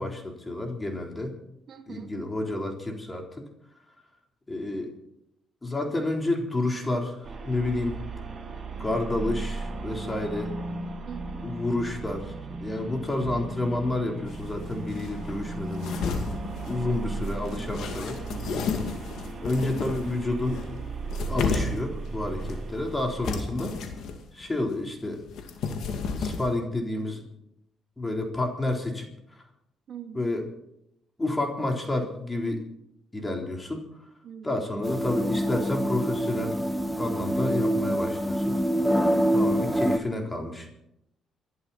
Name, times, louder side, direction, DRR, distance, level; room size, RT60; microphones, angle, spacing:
voice 1, 0.0-1.3 1.9-3.5 4.5-4.9 5.6-8.0 8.8-10.5 11.4-16.2 16.6-18.2 19.4-20.6 21.3-23.8 24.3-25.2 26.1-27.2 28.0-29.1 30.1-30.4 31.2-32.6 33.1-33.8 34.4-36.6 37.0-38.6 39.3-40.7, left 2 dB, 20° left, 2 dB, 3.9 m, -30 dB
voice 2, 1.7-2.1 11.0-11.5 29.9-30.2 34.2-34.8 39.0-40.0, right 9 dB, 65° right, 3 dB, 2.7 m, -43 dB
sound 1, 7.2-23.3, right 3 dB, 40° right, 5.2 m, -36 dB
sound 2, 14.3-14.4 14.7-20.2 20.5-21.9 22.3-22.9 23.2-24.1 24.4-26.6, left 5 dB, 80° left, 2.5 m, -33 dB
sound 3, 34.8-40.0, equal, ahead, 1.4 m, -25 dB
27.5 x 11.5 x 4.3 m, 0.81 s
cardioid pair, 90°, 0 cm